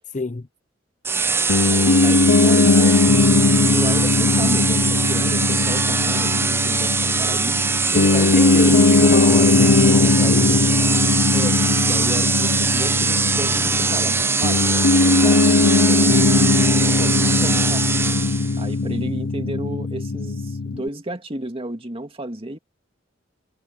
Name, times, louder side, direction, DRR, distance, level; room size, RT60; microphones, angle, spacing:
voice 1, 0.1-0.5 7.9-10.7, left 2 dB, 40° left, 0.8 m, -26 dB
sound 1, 1.0-18.6, right 4 dB, 10° right, 0.4 m, -22 dB
Piano, 1.5-20.9, left 3 dB, 80° left, 0.7 m, -19 dB
voice 2, 1.7-3.1 3.3-7.6 8.5-8.7 11.3-14.6 14.9-16.2 17.0-17.9 18.6-22.6, right 1 dB, 30° right, 2.1 m, -33 dB
head